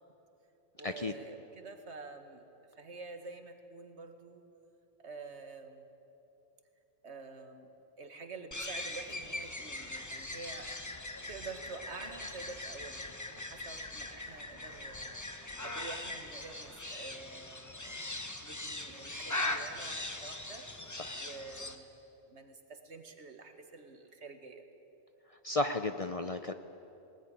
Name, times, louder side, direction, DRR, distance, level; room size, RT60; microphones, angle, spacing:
voice 1, 0.8-2.4 2.8-4.4 5.0-5.9 7.0-7.7 8.0-10.8 11.3-15.1 15.6-18.1 18.4-20.7 21.2-21.9 22.3-24.7, right 3 dB, 80° right, 6 dB, 2.0 m, -48 dB
sound 1, 8.5-21.8, left 2 dB, 15° left, 1.1 m, -41 dB
voice 2, 25.4-26.5, left 2 dB, 35° left, 8 dB, 0.7 m, -33 dB
19.0 x 19.0 x 9.9 m, 3.0 s
omnidirectional pair, 1.1 m